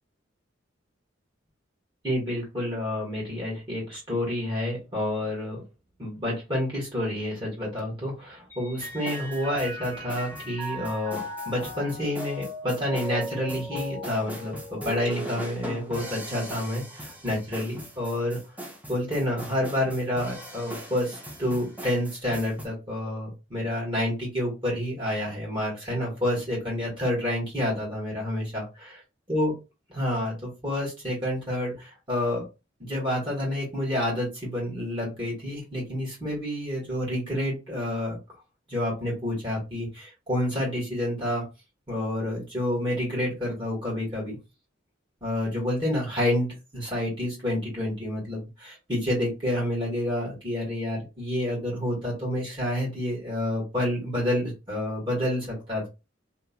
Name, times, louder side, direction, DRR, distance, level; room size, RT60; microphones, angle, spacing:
voice 1, 2.0-5.6 6.0-11.2 11.4-18.4 18.9-29.0 29.3-29.5 29.9-32.4 32.8-38.2 38.7-41.4 41.9-44.4 45.2-55.9, left 1 dB, 25° right, -4 dB, 1.4 m, -29 dB
Mallet percussion, 8.5-16.2, equal, 10° left, 1.1 m, -38 dB
sound 1, 8.8-22.7, equal, 10° right, 0.5 m, -41 dB
2.8 x 2.4 x 2.3 m, 0.28 s
head